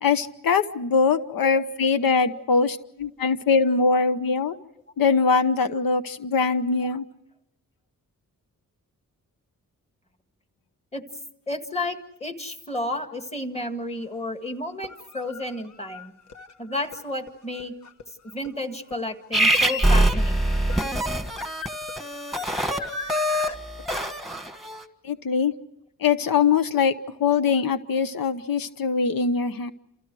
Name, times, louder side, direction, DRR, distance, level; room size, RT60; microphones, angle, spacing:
voice 1, 0.0-4.6 5.0-7.0 25.0-25.5 26.0-26.9 27.2-29.7, left 5 dB, 85° left, 11 dB, 1.0 m, -22 dB
voice 2, 11.5-16.1 16.6-17.8 18.2-20.4, left 1 dB, 20° left, 6 dB, 1.9 m, -32 dB
sound 1, 13.6-13.7 14.7-23.6, left 3 dB, 55° left, 1.4 m, -42 dB
sound 2, 19.3-24.8, right 1 dB, ahead, 1.4 m, -24 dB
29.0 x 28.0 x 4.8 m, 0.80 s
wide cardioid pair, 170°, 34 cm